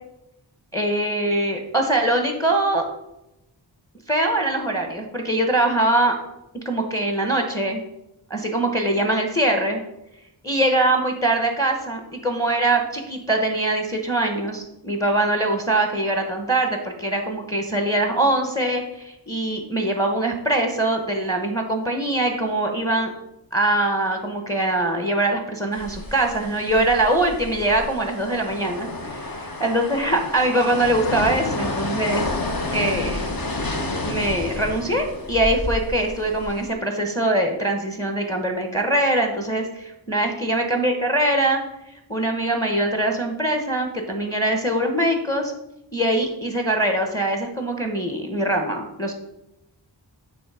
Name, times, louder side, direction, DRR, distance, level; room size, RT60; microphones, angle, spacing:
voice 1, 0.7-2.8 4.1-6.1 6.6-7.8 8.3-9.8 10.4-23.1 23.5-32.2 32.7-41.6 41.9-45.5 45.9-49.1, right 1 dB, 10° left, 3 dB, 1.1 m, -23 dB
sound 1, 25.7-36.7, left 2 dB, 50° left, 1.1 m, -30 dB
9.2 x 3.4 x 4.9 m, 0.87 s
wide cardioid pair, 40°, 45 cm